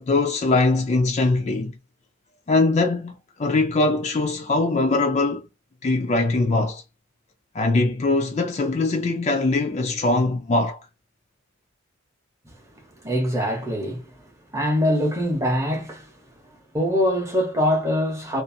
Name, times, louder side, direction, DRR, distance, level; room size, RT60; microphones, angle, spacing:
voice 1, 0.0-1.7 2.5-5.5 5.8-6.8 7.5-10.8, left 2 dB, 30° left, 0.3 m, -22 dB
voice 2, 13.0-14.1 14.5-16.1 16.7-18.4, equal, 15° right, 0.7 m, -23 dB
2.5 x 2.4 x 2.6 m
head